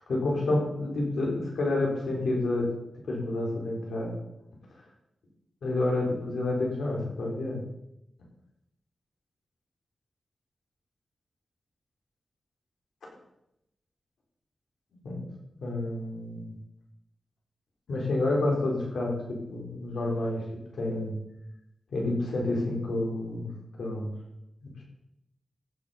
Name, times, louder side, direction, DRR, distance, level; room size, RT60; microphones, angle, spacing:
voice 1, 0.1-2.7 3.0-4.1 5.6-7.6 15.0-15.2 15.6-16.5 17.9-20.4 20.7-21.2 21.9-23.5 23.8-24.1 24.6-24.7, left 2 dB, 90° left, -1 dB, 3.9 m, -29 dB
15.0 x 6.5 x 5.6 m, 0.85 s
wide cardioid pair, 90°, 0 cm